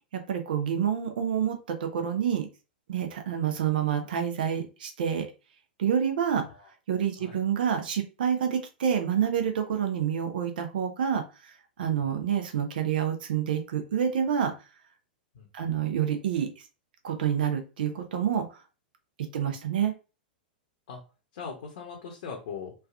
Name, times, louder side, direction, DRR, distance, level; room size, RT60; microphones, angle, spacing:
voice 1, 0.1-2.5 2.9-5.3 5.8-6.4 6.9-14.5 15.5-16.5 17.0-18.6 19.3-19.9, right 8 dB, 65° right, 5 dB, 0.5 m, -28 dB
voice 2, 12.0-12.3 15.3-15.8 20.9-21.0 21.3-22.7, left 6 dB, 60° left, 1 dB, 0.8 m, -41 dB
3.3 x 2.3 x 2.3 m, 0.31 s
figure-of-eight pair, 100°, 5 cm